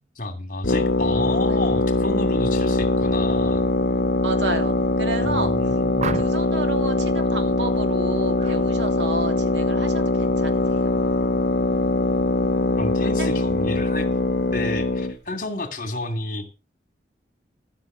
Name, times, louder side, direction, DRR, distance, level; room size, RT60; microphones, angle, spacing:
voice 1, 0.2-3.6 5.2-6.2 12.8-14.1 14.5-16.5, left 2 dB, 45° left, 2.6 m, -30 dB
sound 1, 0.6-15.1, left 2 dB, 65° left, 1.1 m, -22 dB
voice 2, 4.2-5.8 6.1-10.9 13.0-13.4, right 2 dB, 80° right, 2.8 m, -31 dB
sound 2, 6.0-6.6 8.4-8.6 9.0-9.4, right 4 dB, 40° right, 0.7 m, -32 dB
14.0 x 6.6 x 6.7 m
head